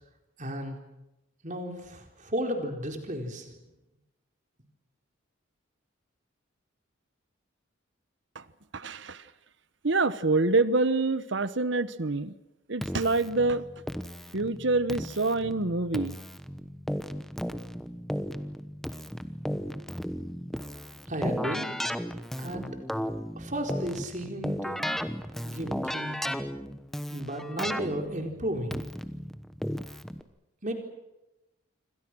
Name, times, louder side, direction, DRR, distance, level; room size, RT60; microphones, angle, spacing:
voice 1, 0.4-0.8 1.4-3.5 21.1-21.7 22.4-22.6 23.4-24.8 25.4-26.2 27.1-28.8 30.6-30.7, equal, 35° right, 4 dB, 4.2 m, -34 dB
voice 2, 8.7-9.3 9.8-12.3 12.7-13.6 14.3-16.1, right 3 dB, 60° right, 15 dB, 1.1 m, -26 dB
Keyboard (musical), 12.8-30.2, equal, ahead, 1.0 m, -35 dB
28.0 x 25.0 x 6.2 m, 0.96 s
head